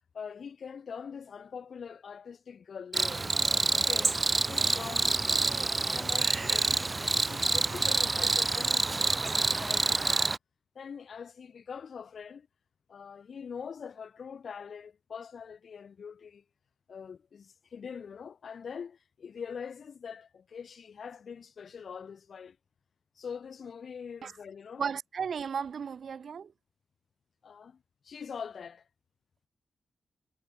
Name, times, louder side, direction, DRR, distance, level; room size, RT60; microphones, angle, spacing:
voice 1, 0.1-3.3 3.7-5.5 5.9-7.0 7.3-10.3 10.8-12.5 12.9-16.4 16.9-22.6 23.2-24.9 27.4-28.9, left 6 dB, 45° left, 3.8 m, -43 dB
Cricket, 2.9-10.4, right 3 dB, 20° right, 0.9 m, -27 dB
voice 2, 24.8-26.5, right 6 dB, 50° right, 1.7 m, -34 dB
wide cardioid pair, 175°, 0 cm